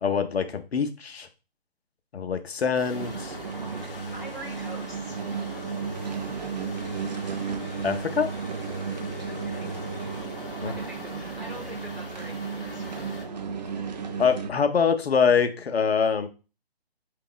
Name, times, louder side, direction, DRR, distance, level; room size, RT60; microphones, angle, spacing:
voice 1, 0.0-1.3 2.1-3.3 7.8-8.3 10.6-10.7 14.2-16.3, left 6 dB, 75° left, 8 dB, 0.8 m, -24 dB
sound 1, 2.7-13.2, left 4 dB, 60° left, 1.1 m, -44 dB
sound 2, 2.9-14.5, right 5 dB, 40° right, 0.6 m, -34 dB
voice 2, 4.1-5.2 9.3-9.9 10.7-13.3, right 1 dB, ahead, -9 dB, 1.0 m, -44 dB
4.6 x 2.8 x 3.8 m, 0.32 s
hypercardioid pair, 160°, 32 cm